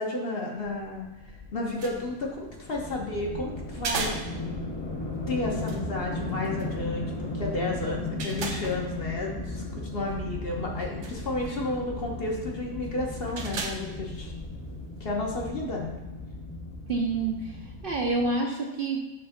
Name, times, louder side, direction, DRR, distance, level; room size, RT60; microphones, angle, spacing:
voice 1, 0.0-4.1 5.3-14.3 15.0-16.0, left 2 dB, 45° left, -1 dB, 1.2 m, -32 dB
sound 1, 0.7-18.3, left 2 dB, 25° left, 0.7 m, -36 dB
sound 2, 1.5-15.0, right 4 dB, 65° right, 1.1 m, -41 dB
voice 2, 16.9-19.1, right 3 dB, 50° right, 1 dB, 0.8 m, -28 dB
7.8 x 3.3 x 5.8 m, 1.1 s
omnidirectional pair, 1.4 m